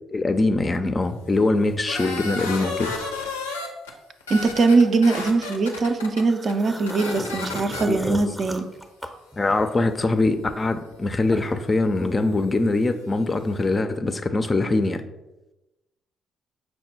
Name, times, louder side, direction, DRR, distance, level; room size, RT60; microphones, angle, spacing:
voice 1, 0.1-2.9 7.3-7.4 7.9-8.2 9.4-15.0, left 2 dB, 30° left, 8 dB, 0.4 m, -23 dB
sound 1, 1.9-3.9 4.2-6.2 6.5-6.6 6.9-7.8, left 3 dB, 85° left, 0.5 m, -32 dB
voice 2, 4.3-8.7, right 3 dB, 45° right, 9 dB, 0.4 m, -21 dB
sound 2, 6.3-9.9 10.2-11.7, equal, 5° right, 0.6 m, -36 dB
5.7 x 2.2 x 4.2 m, 1.0 s
figure-of-eight pair, 45°, 0 cm